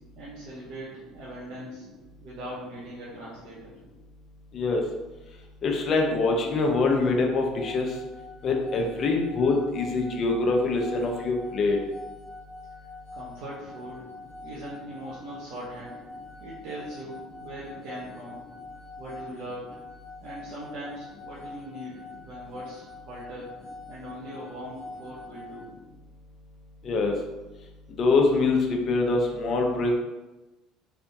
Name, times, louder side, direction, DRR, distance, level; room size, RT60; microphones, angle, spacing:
voice 1, 0.1-1.8 2.2-3.7 13.1-14.0 14.4-16.0 16.4-18.4 19.0-19.8 20.2-23.5 23.9-25.7, right 1 dB, 70° right, -7 dB, 1.0 m, -40 dB
voice 2, 5.6-7.9 8.4-11.8 26.8-27.1 28.0-29.9, left 3 dB, 45° left, 2 dB, 0.7 m, -24 dB
sound 1, 7.6-25.6, left 3 dB, 25° right, 0.9 m, -44 dB
3.5 x 3.4 x 2.8 m, 1.1 s
cardioid pair, 110°, 0 cm